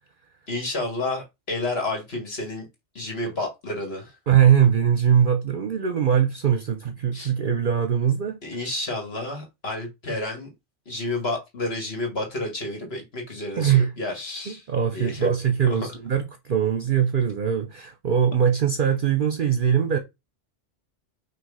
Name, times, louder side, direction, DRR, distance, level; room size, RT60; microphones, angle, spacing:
voice 1, 0.5-2.7 2.9-4.2 7.1-7.3 8.4-10.5 10.9-14.6 14.9-15.3 15.7-15.9, left 2 dB, 60° left, 2.4 m, -30 dB
voice 2, 4.3-8.4 13.6-13.9 14.5-20.0, right 8 dB, 50° right, 0.8 m, -21 dB
6.0 x 3.1 x 5.5 m
omnidirectional pair, 1.2 m